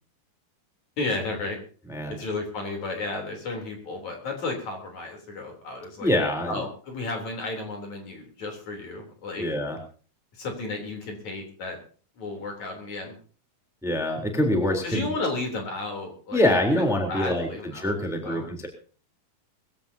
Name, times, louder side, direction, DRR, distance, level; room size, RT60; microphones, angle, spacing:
voice 1, 1.0-1.6 2.1-6.1 6.5-9.5 10.3-11.8 12.2-13.1 14.8-16.5 17.1-17.9 18.2-18.5, left 3 dB, 50° left, 3 dB, 4.8 m, -33 dB
voice 2, 6.0-6.5 9.4-9.8 13.8-15.1 16.3-18.7, left 1 dB, ahead, 3 dB, 3.2 m, -25 dB
22.0 x 16.0 x 2.9 m, 0.40 s
omnidirectional pair, 4.3 m